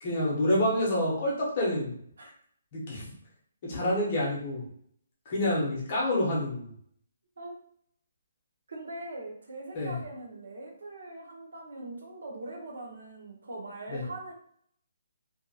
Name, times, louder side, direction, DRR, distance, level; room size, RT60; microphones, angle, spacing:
voice 1, 0.0-1.9 2.7-3.1 3.6-4.6 5.3-6.7 9.7-10.0 13.9-14.0, left 1 dB, 25° left, -5 dB, 0.7 m, -28 dB
voice 2, 8.7-14.3, right 2 dB, 65° right, -1 dB, 0.8 m, -41 dB
2.6 x 2.4 x 2.7 m, 0.64 s
hypercardioid pair, 180°, 0 cm